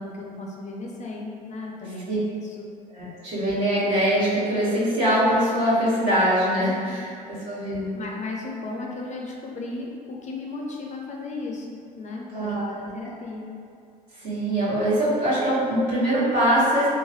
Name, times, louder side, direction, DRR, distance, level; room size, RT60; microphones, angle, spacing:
voice 1, 0.0-2.7 6.6-7.0 7.9-13.5, left 3 dB, 35° left, -1 dB, 0.4 m, -35 dB
voice 2, 2.9-7.9 12.3-12.9 14.2-16.9, equal, 60° right, -11 dB, 1.4 m, -23 dB
3.0 x 2.2 x 2.7 m, 2.3 s
hypercardioid pair, 60°, 21 cm